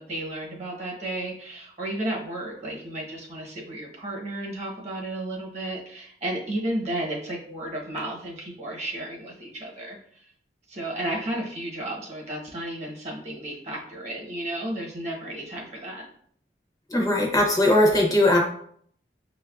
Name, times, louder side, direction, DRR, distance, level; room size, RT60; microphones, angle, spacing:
voice 1, 0.0-10.3 10.7-16.0, right 1 dB, 40° right, -2 dB, 0.9 m, -33 dB
voice 2, 16.9-18.4, left 1 dB, 20° left, -1 dB, 0.5 m, -19 dB
6.3 x 2.2 x 2.3 m, 0.62 s
head